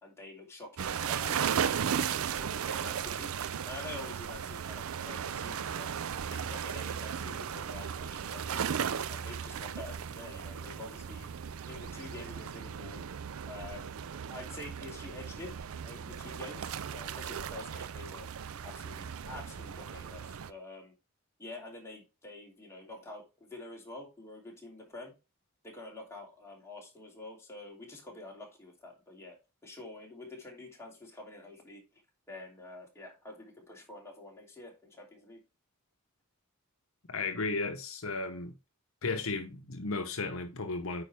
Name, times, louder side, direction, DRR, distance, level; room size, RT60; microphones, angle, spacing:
voice 1, 0.0-3.3 3.7-5.9 6.3-8.7 9.1-11.3 11.6-13.0 13.5-15.5 15.8-18.3 18.6-20.9 21.4-25.1 25.6-29.4 29.6-32.0 32.3-35.4, left 2 dB, 10° left, 2.8 m, -47 dB
sound 1, 0.8-20.5, right 7 dB, 70° right, 0.5 m, -36 dB
voice 2, 37.1-38.5 39.0-41.0, left 3 dB, 70° left, 0.9 m, -34 dB
8.9 x 5.1 x 3.4 m
head